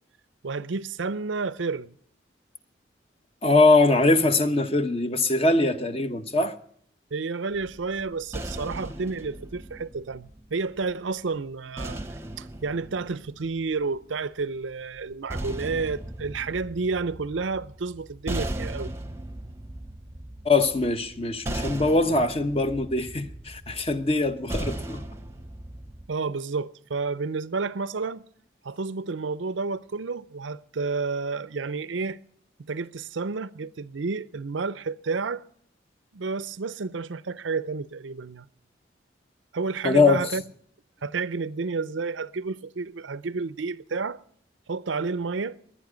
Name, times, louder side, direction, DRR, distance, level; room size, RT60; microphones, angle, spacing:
voice 1, 0.4-1.9 7.1-12.0 12.4-18.9 26.1-28.2 28.6-32.2 32.6-35.4 36.1-38.5 39.5-40.4 41.0-44.2 44.7-45.6, right 4 dB, 85° right, 0.6 m, -30 dB
voice 2, 3.4-6.5 20.4-25.0 39.8-40.2, left 3 dB, 30° left, 1.0 m, -22 dB
sound 1, 7.5-10.8 11.8-14.0 15.0-26.1, right 1 dB, 15° right, 0.9 m, -37 dB
21.5 x 10.0 x 5.0 m
head